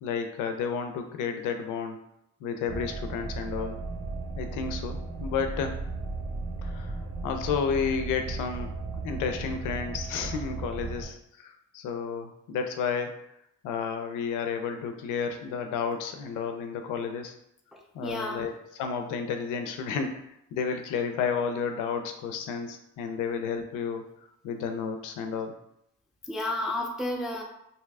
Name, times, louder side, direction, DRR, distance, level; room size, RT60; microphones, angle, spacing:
voice 1, 0.0-2.0 2.4-3.8 4.4-5.8 6.6-6.9 7.2-8.7 9.0-13.2 13.6-17.4 17.9-20.1 20.5-24.0 24.4-25.6, left 6 dB, 90° left, 6 dB, 0.5 m, -31 dB
sound 1, 2.7-11.1, right 3 dB, 65° right, 1.4 m, -35 dB
voice 2, 17.7-18.5 26.2-27.4, left 1 dB, ahead, 0 dB, 0.4 m, -32 dB
2.7 x 2.4 x 3.3 m, 0.79 s
cardioid pair, 90°, 30 cm